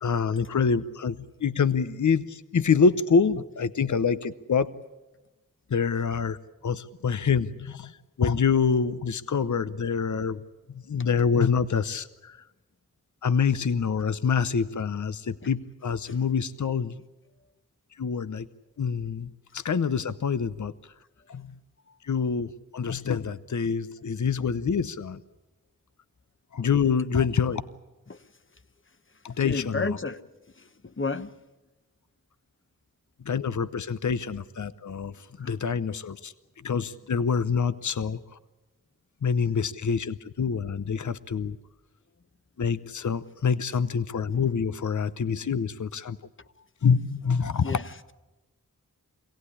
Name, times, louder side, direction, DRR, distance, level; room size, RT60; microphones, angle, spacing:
voice 1, 0.0-4.7 5.7-6.4 6.6-10.4 10.7-12.4 13.2-17.0 18.0-18.5 18.8-20.9 21.3-21.6 22.0-25.2 26.5-27.6 29.2-30.0 33.2-36.3 36.6-38.4 39.2-41.6 42.6-46.2 46.8-47.8, left 6 dB, 60° left, 13 dB, 0.8 m, -26 dB
voice 2, 29.4-30.2 30.6-31.3 35.4-35.6 47.6-47.8, left 3 dB, 35° left, 11 dB, 1.1 m, -31 dB
25.5 x 17.5 x 9.9 m, 1.1 s
wide cardioid pair, 80°, 33 cm